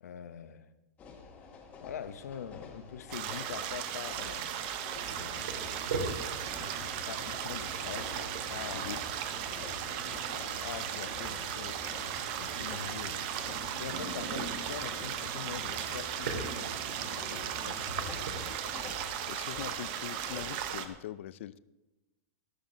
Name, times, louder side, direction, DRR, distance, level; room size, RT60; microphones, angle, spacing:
voice 1, 0.0-0.7 1.8-4.6 5.1-5.6 6.5-8.2 8.5-9.0 9.5-11.8 12.4-13.3 13.8-16.4 16.8-17.6, left 8 dB, 85° left, 0.9 m, -44 dB
sound 1, 1.0-20.9, left 4 dB, 15° left, 1.2 m, -50 dB
sound 2, 3.1-20.9, right 10 dB, 35° right, 0.8 m, -37 dB
sound 3, 4.9-18.4, right 2 dB, 65° right, 3.5 m, -42 dB
voice 2, 18.4-18.8 19.3-21.6, left 13 dB, 50° left, 0.4 m, -43 dB
13.0 x 13.0 x 4.0 m
supercardioid pair, 175°, 8 cm